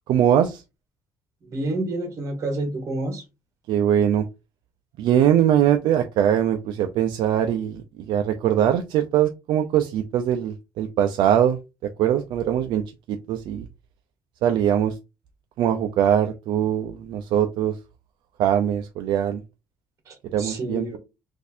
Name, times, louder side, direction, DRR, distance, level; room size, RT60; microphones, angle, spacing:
voice 1, 0.1-0.6 3.7-4.3 5.0-13.7 14.4-15.0 15.6-17.8 18.4-19.4 20.3-21.0, right 10 dB, 60° right, 0.4 m, -22 dB
voice 2, 1.5-3.2 20.1-21.0, right 2 dB, 35° right, 1.2 m, -29 dB
4.1 x 2.6 x 2.5 m
cardioid pair, 165°, 9 cm